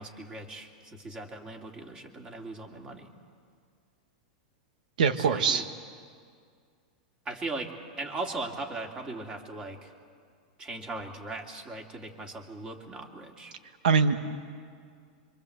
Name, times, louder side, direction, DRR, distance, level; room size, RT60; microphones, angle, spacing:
voice 1, 0.0-3.1 5.2-5.6 7.2-7.7 8.0-9.9 10.6-13.5, right 2 dB, 20° right, 2 dB, 2.8 m, -38 dB
voice 2, 5.0-5.6 13.8-14.4, right 5 dB, 80° right, 10 dB, 1.6 m, -23 dB
26.0 x 24.5 x 8.1 m, 2.1 s
hypercardioid pair, 130°, 4 cm